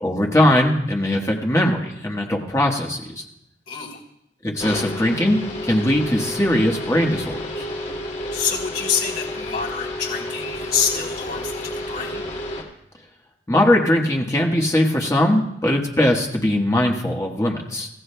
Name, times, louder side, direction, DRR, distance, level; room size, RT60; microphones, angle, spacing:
voice 1, 0.0-3.2 4.4-7.6 13.5-17.9, left 1 dB, 20° left, 0 dB, 1.4 m, -20 dB
voice 2, 3.7-4.0 8.3-12.2, left 6 dB, 60° left, -2 dB, 3.6 m, -26 dB
sound 1, 4.6-12.6, left 1 dB, 45° left, 2.5 m, -31 dB
24.5 x 16.0 x 2.3 m, 0.80 s
head